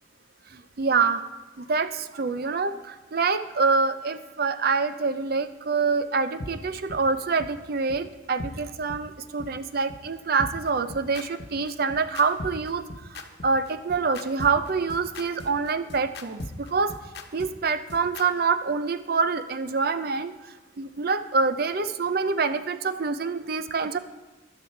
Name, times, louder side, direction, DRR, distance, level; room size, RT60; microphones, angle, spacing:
voice 1, 0.8-1.2 1.6-12.8 13.4-16.9 17.3-20.3 20.8-24.0, right 4 dB, 55° right, 11 dB, 0.6 m, -26 dB
sound 1, 6.4-6.5 6.9-7.0 7.4-7.5 7.9-8.0 8.4-8.5 8.9-9.0 9.4-9.5 9.9-10.0 10.4-18.3, left 2 dB, 60° left, 1.1 m, -38 dB
12.0 x 11.5 x 4.6 m, 1.2 s
head